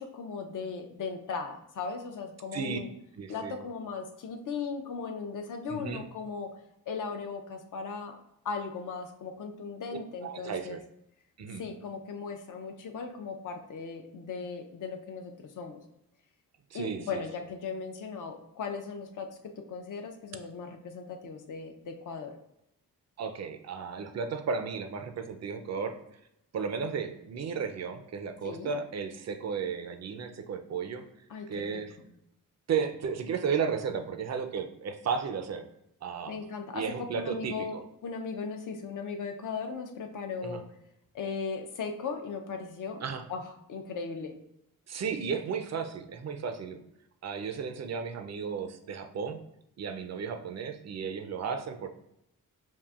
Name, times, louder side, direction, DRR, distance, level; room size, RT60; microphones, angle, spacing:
voice 1, 0.0-2.9 3.3-6.5 6.9-8.2 8.4-10.8 11.6-15.8 16.7-22.3 28.4-28.7 31.3-32.1 36.3-40.7 41.1-43.0 43.3-44.4, left 5 dB, 60° left, 5 dB, 0.6 m, -37 dB
voice 2, 3.2-3.6 5.7-6.0 10.2-10.8 11.4-11.6 16.7-17.2 23.2-25.9 26.5-31.0 31.5-31.9 32.7-35.6 36.0-36.3 36.7-37.8 40.4-40.6 43.0-43.2 44.9-46.8 47.2-49.4 49.8-51.9, right 6 dB, 45° right, 7 dB, 0.5 m, -34 dB
5.4 x 2.5 x 2.4 m, 0.80 s
cardioid pair, 80°, 36 cm